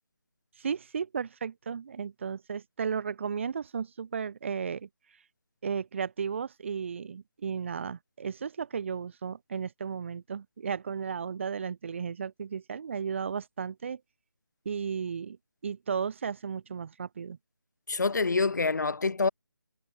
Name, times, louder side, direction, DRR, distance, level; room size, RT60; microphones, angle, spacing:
voice 1, 0.6-4.9 5.6-14.0 14.7-15.4 15.6-17.4, right 6 dB, 35° right, 3.6 m, -34 dB
voice 2, 17.9-19.3, left 4 dB, 55° left, 0.9 m, -26 dB
figure-of-eight pair, 155°, 12 cm